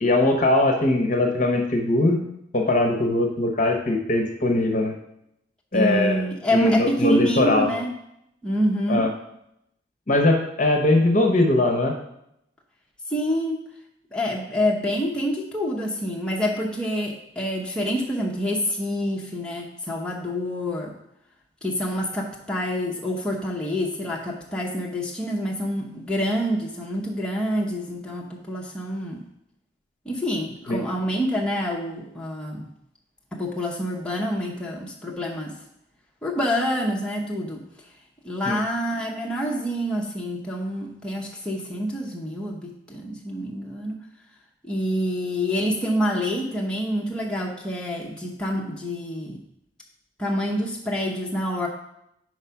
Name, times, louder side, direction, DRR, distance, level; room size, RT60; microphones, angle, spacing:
voice 1, 0.0-2.2 2.5-4.9 5.7-6.2 6.5-7.7 8.9-9.1 10.1-11.9 30.7-30.8 38.5-38.6, left 2 dB, 45° left, 3 dB, 0.9 m, -20 dB
voice 2, 5.7-7.9 8.4-9.1 13.1-13.6 14.1-20.9 21.6-29.2 30.0-32.7 33.3-35.6 36.2-37.6 38.2-44.0 44.6-49.4 50.2-51.7, equal, 5° left, -3 dB, 0.8 m, -27 dB
4.9 x 4.8 x 5.7 m, 0.79 s
head